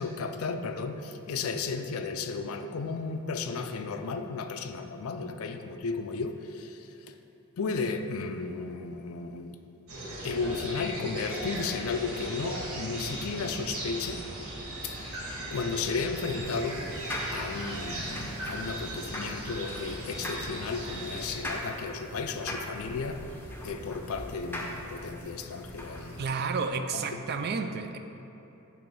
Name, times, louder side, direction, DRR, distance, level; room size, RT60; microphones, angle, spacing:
voice 1, 0.0-6.9 7.6-9.6 10.2-14.2 14.8-16.8 17.3-23.2 23.6-26.3 26.9-27.2, left 4 dB, 65° left, 7 dB, 0.4 m, -34 dB
sound 1, 9.9-21.4, right 1 dB, 70° right, 1.3 m, -38 dB
sound 2, 16.4-26.3, left 1 dB, 10° left, 0.6 m, -40 dB
voice 2, 26.2-28.0, right 4 dB, 45° right, 7 dB, 0.4 m, -31 dB
8.7 x 3.1 x 5.3 m, 3.0 s
head